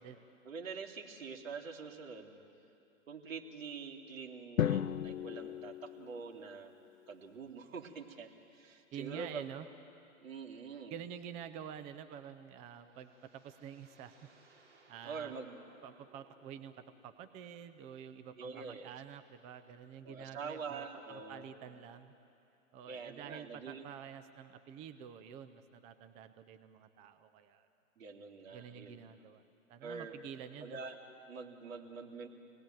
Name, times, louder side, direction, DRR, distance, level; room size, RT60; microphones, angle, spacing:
voice 1, 0.4-2.4 3.1-6.7 7.1-9.5 10.2-11.0 15.0-15.6 18.4-18.9 20.0-21.5 22.9-23.9 28.0-29.0 29.8-30.1 30.6-32.3, right 5 dB, 75° right, 2 dB, 3.0 m, -45 dB
Drum, 4.6-6.7, left 10 dB, 80° left, 0.8 m, -35 dB
voice 2, 8.9-9.7 10.9-14.3 14.9-15.3 15.8-22.1 22.7-27.7 28.5-30.8, right 8 dB, 15° right, 10 dB, 0.6 m, -49 dB
sound 1, 12.3-17.3, right 3 dB, 55° right, 5.9 m, -66 dB
27.0 x 19.0 x 9.1 m, 2.6 s
hypercardioid pair, 135°, 41 cm